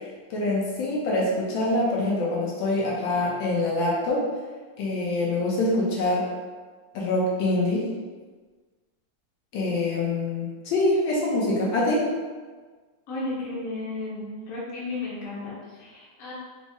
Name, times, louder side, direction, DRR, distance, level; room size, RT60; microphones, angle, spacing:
voice 1, 0.3-4.3 4.8-6.3 6.9-7.9 9.5-12.1, left 2 dB, 75° left, -4 dB, 1.4 m, -25 dB
voice 2, 13.1-16.3, left 2 dB, 55° left, -5 dB, 1.0 m, -34 dB
4.0 x 2.0 x 3.5 m, 1.4 s
omnidirectional pair, 2.2 m